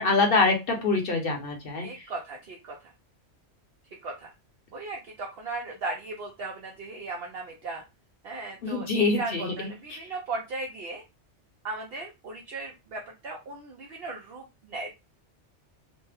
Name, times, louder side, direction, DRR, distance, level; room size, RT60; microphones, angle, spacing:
voice 1, 0.0-1.9 8.6-10.0, left 3 dB, 55° left, 2 dB, 1.0 m, -25 dB
voice 2, 1.8-2.7 4.0-4.3 4.7-7.8 8.2-11.0 11.6-14.9, right 3 dB, 60° right, 1 dB, 0.8 m, -37 dB
3.2 x 2.1 x 3.4 m, 0.25 s
omnidirectional pair, 1.2 m